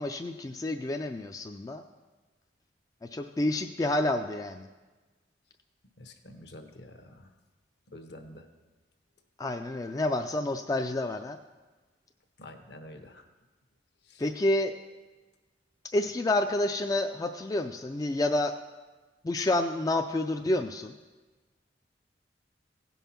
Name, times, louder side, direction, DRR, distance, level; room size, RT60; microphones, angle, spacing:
voice 1, 0.0-1.8 3.0-4.7 9.4-11.4 14.2-14.7 15.9-18.5 19.2-20.9, left 1 dB, 20° left, 5 dB, 0.3 m, -29 dB
voice 2, 6.0-7.3 7.9-8.5 12.4-13.3 14.0-14.2, left 1 dB, 65° left, 6 dB, 1.0 m, -48 dB
16.5 x 5.5 x 5.8 m, 1.3 s
head